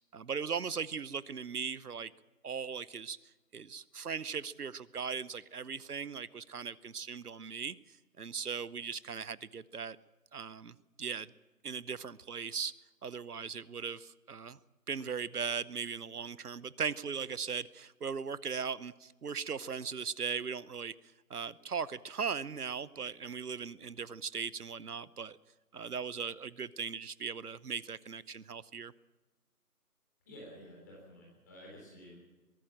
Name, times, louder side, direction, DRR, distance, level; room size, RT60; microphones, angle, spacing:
voice 1, 0.1-2.1 2.4-3.2 3.5-7.8 8.2-10.0 10.3-11.3 11.6-12.7 13.0-14.6 14.9-20.9 21.3-25.4 25.7-28.9, right 6 dB, 70° right, 19 dB, 0.9 m, -38 dB
voice 2, 30.3-32.2, equal, 10° left, -4 dB, 3.9 m, -51 dB
22.5 x 13.5 x 8.9 m, 1.1 s
figure-of-eight pair, 175°, 47 cm